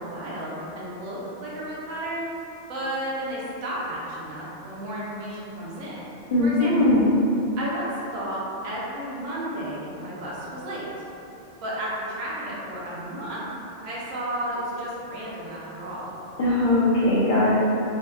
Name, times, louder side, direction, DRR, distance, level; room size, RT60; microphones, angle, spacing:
voice 1, 0.0-2.3 2.7-6.0 6.4-6.9 7.6-11.0 11.6-13.5 13.8-16.1, right 1 dB, 75° right, -7 dB, 1.0 m, -33 dB
voice 2, 6.3-7.1 16.4-17.5, left 1 dB, 75° left, -10 dB, 0.4 m, -20 dB
2.7 x 2.5 x 2.3 m, 2.8 s
omnidirectional pair, 1.4 m